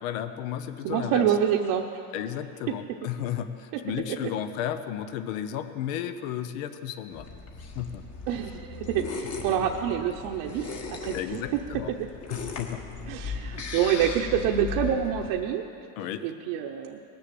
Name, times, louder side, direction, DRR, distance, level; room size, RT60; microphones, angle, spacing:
voice 1, 0.0-1.3 2.1-7.3 7.8-8.0 9.5-9.7 11.1-11.9 12.3-12.8 16.0-16.3, left 10 dB, 90° left, 10 dB, 0.9 m, -33 dB
voice 2, 0.8-2.0 2.7-2.8 3.7-3.8 8.3-11.6 12.0-12.1 13.1-15.6 16.2-17.0, right 9 dB, 70° right, 2 dB, 0.9 m, -27 dB
sound 1, 7.1-15.3, left 5 dB, 40° left, 1.6 m, -37 dB
18.5 x 7.0 x 7.7 m, 2.6 s
cardioid pair, 135°, 40 cm